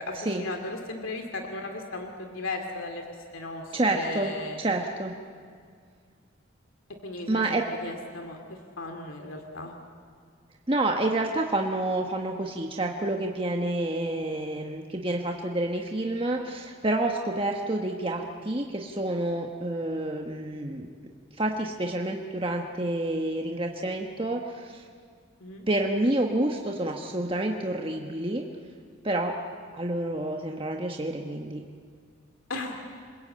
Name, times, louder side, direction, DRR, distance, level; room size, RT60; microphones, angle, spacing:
voice 1, 0.0-4.6 7.0-9.7 25.4-25.7 32.5-32.8, left 2 dB, 90° left, 4 dB, 2.5 m, -36 dB
voice 2, 3.7-5.1 7.3-7.6 10.7-20.9 21.4-24.8 25.7-28.4 29.0-29.3 29.7-31.6, right 1 dB, 25° right, 1 dB, 1.3 m, -28 dB
28.5 x 21.0 x 8.7 m, 2.1 s
head